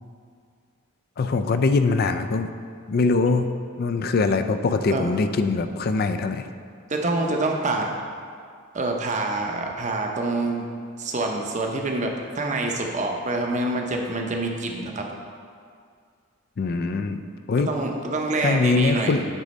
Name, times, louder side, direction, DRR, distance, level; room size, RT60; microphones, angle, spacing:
voice 1, 1.2-2.5 2.9-3.5 3.8-6.5 16.6-17.2 17.5-17.7 18.4-19.2, left 3 dB, 45° left, 8 dB, 0.4 m, -22 dB
voice 2, 6.9-7.9 8.7-10.6 11.0-15.1 17.6-19.3, right 2 dB, 35° right, 1 dB, 0.7 m, -26 dB
8.3 x 4.0 x 5.3 m, 2.2 s
head